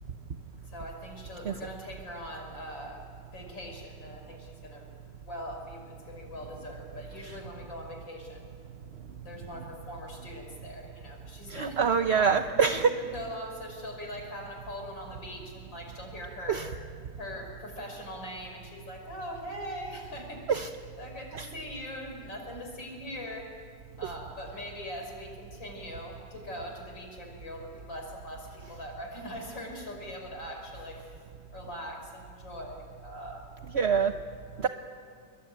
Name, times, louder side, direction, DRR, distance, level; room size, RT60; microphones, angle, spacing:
voice 1, 0.7-3.0 3.3-4.9 5.2-8.5 9.2-11.8 12.5-16.6 17.2-20.6 21.0-23.4 24.0-31.0 31.5-33.4 34.0-34.2 34.6-34.7, left 1 dB, 80° left, 2 dB, 6.4 m, -41 dB
voice 2, 11.5-12.9 16.5-16.7 20.5-20.7 21.3-21.5 33.7-34.1 34.6-34.7, right 6 dB, 45° right, 7 dB, 0.9 m, -25 dB
28.5 x 22.5 x 9.3 m, 2.1 s
omnidirectional pair, 2.0 m